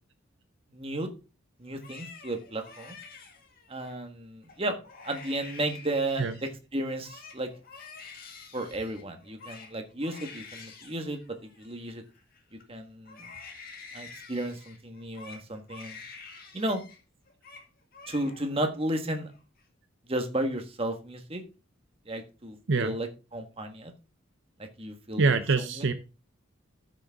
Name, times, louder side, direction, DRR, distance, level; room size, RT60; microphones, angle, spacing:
voice 1, 0.7-1.1 1.6-3.0 3.7-4.8 5.0-7.5 8.5-12.0 12.5-13.3 13.9-16.0 16.5-16.8 18.1-19.3 20.1-21.4 22.1-23.9 24.6-25.2 25.8-25.9, right 1 dB, 30° right, 5 dB, 1.6 m, -33 dB
Crying sobbing, 1.7-3.9 4.4-4.6 4.8-6.6 6.9-12.6 13.0-17.0 17.3-17.7 17.9-18.6 19.0-19.6, left 5 dB, 45° left, 2.1 m, -48 dB
voice 2, 25.2-25.9, right 4 dB, 60° right, 9 dB, 0.7 m, -24 dB
13.5 x 6.6 x 3.6 m, 0.31 s
head